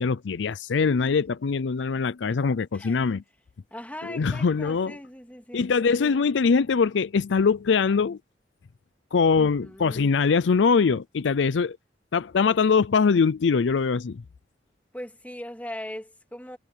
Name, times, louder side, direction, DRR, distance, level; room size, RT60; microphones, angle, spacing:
voice 1, 0.0-3.2 4.0-4.9 5.5-8.2 9.1-11.8 12.1-14.2, left 5 dB, 75° left, 0.5 m, -22 dB
voice 2, 3.7-5.6 9.4-10.1 11.4-11.5 14.9-16.6, left 1 dB, 10° left, 2.5 m, -40 dB
head